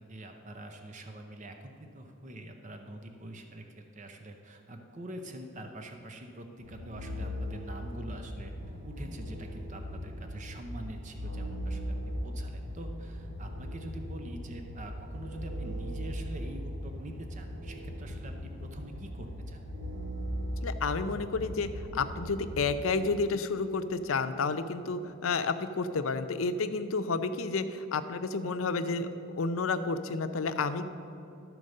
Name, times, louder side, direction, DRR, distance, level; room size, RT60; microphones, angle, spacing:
voice 1, 0.1-8.5 8.8-19.6, right 1 dB, 40° right, 5 dB, 0.7 m, -45 dB
sound 1, 6.6-22.8, equal, 70° right, 1.2 m, -39 dB
voice 2, 20.6-29.1 29.4-30.9, left 4 dB, 90° left, 10 dB, 0.6 m, -31 dB
12.5 x 4.6 x 6.5 m, 2.8 s
head